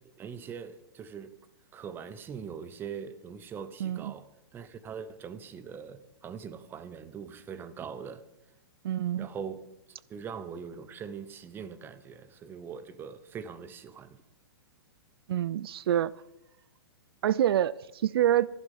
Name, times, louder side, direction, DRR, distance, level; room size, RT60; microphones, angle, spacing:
voice 1, 0.2-1.4 1.7-8.2 9.2-9.7 10.1-14.2, right 7 dB, 15° right, 0.8 m, -42 dB
voice 2, 3.8-4.1 8.8-9.3 15.3-16.1 17.2-18.5, right 11 dB, 65° right, 0.4 m, -26 dB
14.5 x 11.5 x 5.5 m
hypercardioid pair, 150°, 13 cm